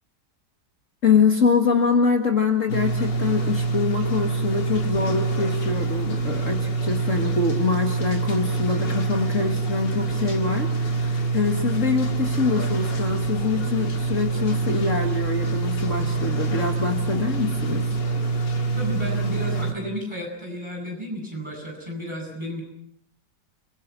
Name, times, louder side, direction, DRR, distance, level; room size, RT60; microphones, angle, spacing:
voice 1, 1.0-17.8, left 5 dB, 45° left, 3 dB, 2.1 m, -24 dB
sound 1, 2.7-19.7, right 3 dB, 80° left, 2.7 m, -25 dB
voice 2, 18.7-22.6, equal, 15° right, 0 dB, 8.0 m, -32 dB
29.5 x 22.0 x 6.0 m, 0.66 s
omnidirectional pair, 1.9 m